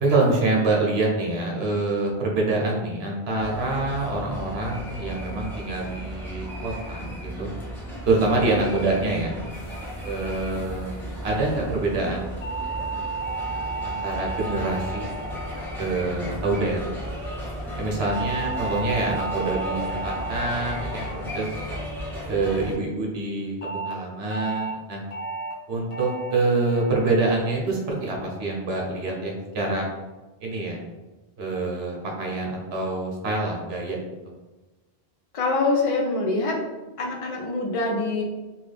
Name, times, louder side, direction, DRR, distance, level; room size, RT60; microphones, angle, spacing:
voice 1, 0.0-7.5 8.1-9.4 10.0-12.8 13.8-15.1 15.8-16.9 17.8-21.5 22.3-25.0 25.7-29.8 30.4-30.8 31.4-34.0, right 2 dB, 75° right, -2 dB, 1.0 m, -26 dB
sound 1, 3.4-22.7, equal, ahead, 0.8 m, -35 dB
sound 2, 12.4-16.9 18.0-22.5 23.6-23.9 24.3-24.7 25.1-25.5 25.9-26.3 26.7-27.1 27.5-27.9, right 3 dB, 65° left, 1.0 m, -34 dB
voice 2, 35.3-36.6 37.0-38.2, left 3 dB, 40° left, 1 dB, 0.5 m, -24 dB
3.1 x 2.4 x 3.3 m, 1.2 s
omnidirectional pair, 1.1 m